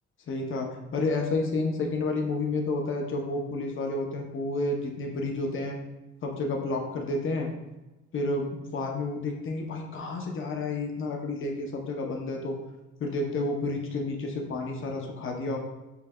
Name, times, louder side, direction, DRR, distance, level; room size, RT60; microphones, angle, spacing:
voice 1, 0.3-5.8 6.2-7.5 8.1-12.6 13.0-15.6, left 2 dB, 45° left, 1 dB, 0.7 m, -30 dB
5.7 x 3.2 x 2.2 m, 1.0 s
cardioid pair, 120°, 29 cm